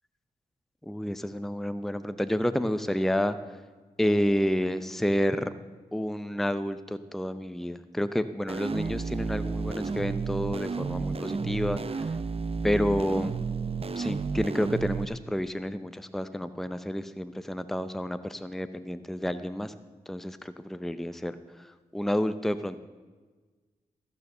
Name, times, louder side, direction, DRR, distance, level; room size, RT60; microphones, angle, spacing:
voice 1, 0.9-3.4 4.0-5.5 5.9-12.0 12.6-13.3 13.9-19.7 20.1-21.3 21.9-22.8, equal, ahead, 12 dB, 0.7 m, -29 dB
sound 1, 8.5-15.0, right 4 dB, 40° right, 0.7 m, -32 dB
14.5 x 6.9 x 6.8 m, 1.4 s
supercardioid pair, 40°, 16 cm